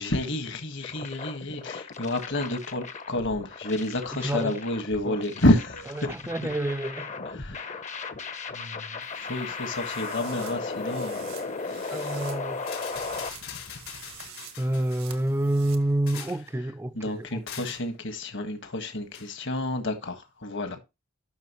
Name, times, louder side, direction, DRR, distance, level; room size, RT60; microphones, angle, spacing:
voice 1, 0.0-6.1 7.3-7.9 8.5-11.3 11.6-12.2 16.9-20.8, left 1 dB, 60° left, 1.6 m, -29 dB
sound 1, 0.8-13.3, left 4 dB, 35° left, 0.8 m, -36 dB
voice 2, 4.2-4.6 5.0-5.2 6.0-7.2 11.9-12.6 14.6-17.7, right 1 dB, 10° right, 0.4 m, -28 dB
sound 2, 9.0-15.8, right 9 dB, 80° right, 1.5 m, -48 dB
sound 3, 11.8-12.1 12.6-15.3 15.8-16.5 17.5-17.9 19.1-19.3, left 8 dB, 85° left, 3.6 m, -42 dB
12.0 x 6.1 x 3.0 m
head